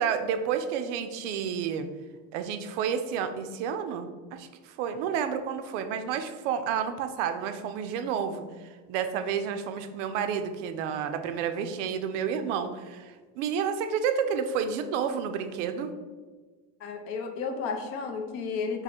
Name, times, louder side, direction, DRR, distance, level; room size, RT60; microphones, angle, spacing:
voice 1, 0.0-1.9 2.3-4.5 4.8-8.4 8.9-15.9, right 7 dB, 85° right, 9 dB, 0.5 m, -30 dB
voice 2, 16.8-18.8, left 5 dB, 40° left, 4 dB, 0.5 m, -32 dB
3.8 x 2.5 x 4.4 m, 1.4 s
cardioid pair, 160°, 35 cm